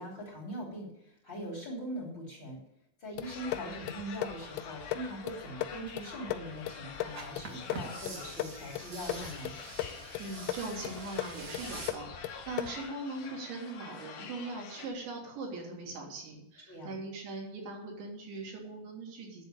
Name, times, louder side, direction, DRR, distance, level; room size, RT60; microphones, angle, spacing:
voice 1, 0.0-2.6 3.0-9.6 16.7-17.0, equal, 30° left, -1 dB, 3.4 m, -41 dB
sound 1, 3.2-12.9, left 13 dB, 85° left, 2.3 m, -39 dB
sound 2, 3.2-14.9, left 5 dB, 60° left, 2.6 m, -47 dB
sound 3, 7.1-11.9, right 3 dB, 55° right, 1.0 m, -46 dB
voice 2, 9.8-19.5, right 3 dB, 85° right, -2 dB, 5.5 m, -41 dB
10.5 x 7.6 x 8.5 m, 0.77 s
omnidirectional pair, 5.0 m